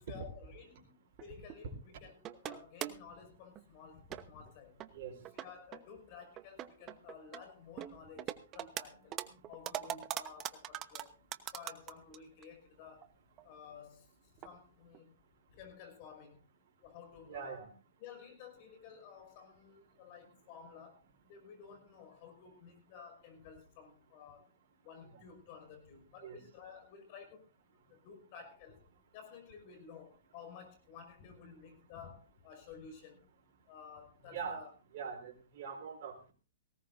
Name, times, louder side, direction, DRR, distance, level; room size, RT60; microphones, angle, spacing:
voice 1, 0.1-2.2 2.4-4.8 5.3-9.2 9.5-11.2 11.5-13.1 13.4-15.2 15.5-16.4 16.8-17.7 18.0-21.0 21.3-24.5 24.8-27.4 27.7-28.8 29.1-33.2 33.7-34.7, left 6 dB, 45° left, 7 dB, 5.5 m, -53 dB
sound 1, 1.2-1.7 2.2-3.1 3.6-3.7 4.1-4.5 4.8-4.9 5.3-5.8 6.4-7.4 7.8-8.8 9.1-12.2 12.4-12.5 13.0-13.1 13.4-13.5 14.4-14.5 14.9-15.0, right 12 dB, 30° right, 1.0 m, -41 dB
voice 2, 17.3-17.7 26.2-26.4 34.3-34.6 34.9-36.1, right 6 dB, 55° right, 3 dB, 4.3 m, -42 dB
19.0 x 17.5 x 2.6 m, 0.33 s
hypercardioid pair, 130°, 0 cm